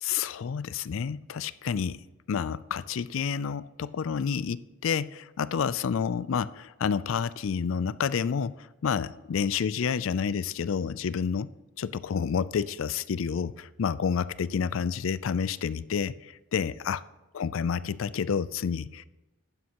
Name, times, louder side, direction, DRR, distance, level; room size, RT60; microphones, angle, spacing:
voice 1, 0.0-2.0 2.3-11.5 11.8-17.0 17.3-19.1, left 6 dB, 75° left, 18 dB, 0.4 m, -29 dB
12.0 x 9.5 x 2.9 m, 1.1 s
head